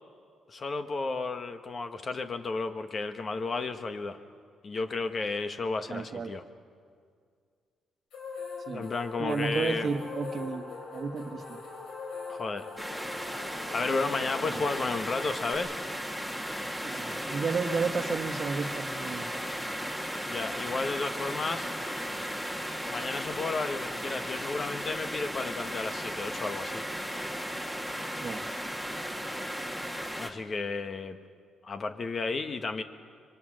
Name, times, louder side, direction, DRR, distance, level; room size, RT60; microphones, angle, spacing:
voice 1, 0.5-4.2 4.6-6.4 8.7-9.9 12.3-12.7 13.7-15.7 20.3-21.7 22.9-26.8 30.2-31.2 31.6-32.8, left 3 dB, 40° left, 8 dB, 1.4 m, -33 dB
voice 2, 5.9-6.3 8.7-8.8 9.2-11.6 14.4-14.7 16.8-19.3 28.1-28.4, right 5 dB, 45° right, 7 dB, 1.4 m, -32 dB
sound 1, 8.1-15.5, left 4 dB, 75° left, 4.6 m, -41 dB
sound 2, 12.8-30.3, equal, 5° left, 2.0 m, -35 dB
26.0 x 23.0 x 6.5 m, 2.2 s
cardioid pair, 90°, 0 cm